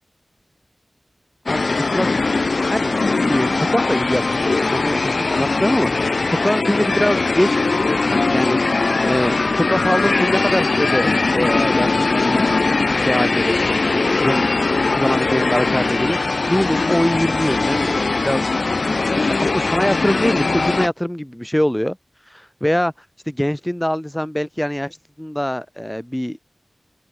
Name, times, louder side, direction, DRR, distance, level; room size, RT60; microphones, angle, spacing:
sound 1, 1.5-20.9, left 3 dB, 60° left, 0.4 m, -20 dB
voice 1, 1.9-2.2 2.7-12.6 12.9-14.5 14.9-18.6 18.9-22.0 22.3-22.9 23.3-26.4, equal, 5° left, 1.1 m, -23 dB
open air
wide cardioid pair, 85°, 0 cm